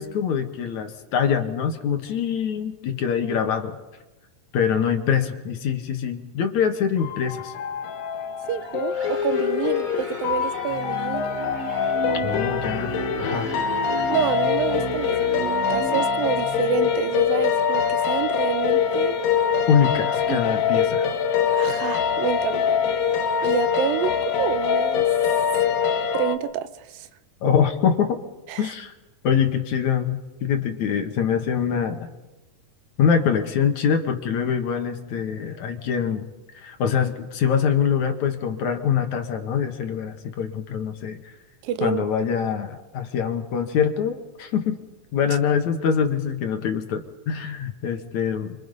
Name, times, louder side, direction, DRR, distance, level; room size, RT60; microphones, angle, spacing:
voice 1, 0.0-3.8 4.5-7.5 12.2-13.5 19.7-21.1 27.4-28.2 28.6-28.9 29.2-32.1 33.0-36.2 36.6-41.2 41.8-44.8 45.1-48.6, left 7 dB, 60° left, 6 dB, 2.7 m, -24 dB
sound 1, 7.0-26.4, left 7 dB, 90° left, 3.1 m, -24 dB
voice 2, 8.5-11.3 14.1-19.2 20.3-20.4 21.5-25.1 26.1-27.1 28.5-28.7 41.6-42.0, right 10 dB, 85° right, 12 dB, 2.7 m, -28 dB
sound 2, 8.6-16.4, right 1 dB, 15° right, 1.7 m, -44 dB
sound 3, 10.7-17.8, right 7 dB, 60° right, 2.5 m, -35 dB
29.5 x 25.5 x 5.4 m, 1.1 s
omnidirectional pair, 4.0 m